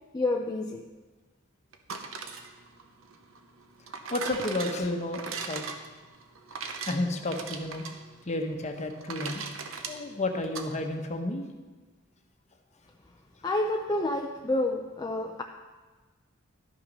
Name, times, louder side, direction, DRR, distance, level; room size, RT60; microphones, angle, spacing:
voice 1, 0.1-0.9 13.4-15.4, left 2 dB, 20° left, 3 dB, 0.4 m, -29 dB
sound 1, 1.7-10.7, right 5 dB, 75° right, 0.8 m, -40 dB
voice 2, 4.1-5.7 6.9-7.8 8.3-9.4 9.9-11.5, left 2 dB, 35° left, 4 dB, 0.9 m, -31 dB
11.5 x 5.9 x 5.3 m, 1.3 s
head